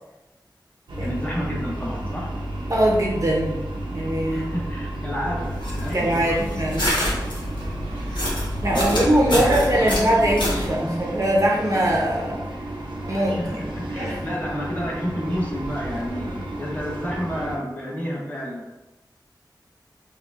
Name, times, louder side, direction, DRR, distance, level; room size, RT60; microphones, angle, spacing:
sound 1, 0.9-17.6, right 1 dB, 85° right, 0.6 m, -31 dB
voice 1, 1.0-2.3 4.3-6.4 7.4-7.5 8.7-9.9 10.7-11.0 13.1-18.7, equal, 20° left, -4 dB, 1.0 m, -30 dB
voice 2, 2.7-3.6 3.9-4.5 5.9-6.8 8.6-12.4 13.1-13.4 14.0-14.2, right 1 dB, 40° right, -3 dB, 0.7 m, -21 dB
sound 2, 5.4-10.7, left 1 dB, 70° left, 1.0 m, -28 dB
4.8 x 2.2 x 2.4 m, 1.0 s
wide cardioid pair, 65°, 8 cm